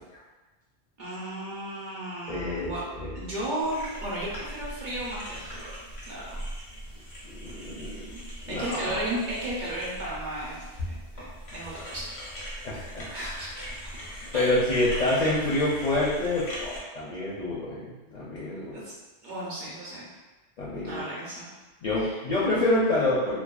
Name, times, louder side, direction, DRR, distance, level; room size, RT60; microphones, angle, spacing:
voice 1, 1.0-2.8 3.1-5.7 6.1-6.4 8.0-8.2 8.5-12.6 13.1-13.7 14.3-14.6 18.7-18.9 19.2-20.1 20.8-21.5 21.9-22.1, right 1 dB, 55° right, -7 dB, 0.7 m, -34 dB
voice 2, 2.3-3.1 7.2-8.1 8.5-9.0 12.6-13.1 14.3-18.8 20.6-21.0 21.8-23.4, left 2 dB, 55° left, -8 dB, 0.5 m, -27 dB
sound 1, 3.6-16.8, equal, 85° left, 1.0 m, -40 dB
2.6 x 2.2 x 2.2 m, 1.2 s
omnidirectional pair, 1.1 m